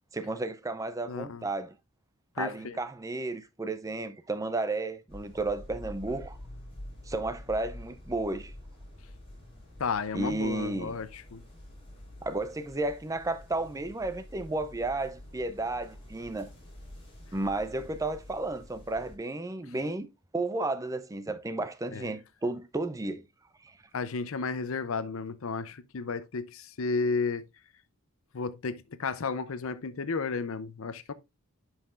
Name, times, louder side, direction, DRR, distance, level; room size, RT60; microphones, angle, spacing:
voice 1, 0.1-1.7 2.4-6.4 7.1-8.5 10.1-11.0 12.2-16.5 17.3-20.1 20.3-23.2 23.6-23.8, right 2 dB, 15° right, 0.5 m, -33 dB
voice 2, 1.0-1.5 2.4-2.8 9.8-11.4 21.9-22.1 23.9-27.4 28.3-31.1, left 4 dB, 65° left, 0.6 m, -33 dB
sound 1, 5.1-19.2, left 1 dB, 25° left, 4.6 m, -48 dB
9.9 x 5.6 x 2.4 m
head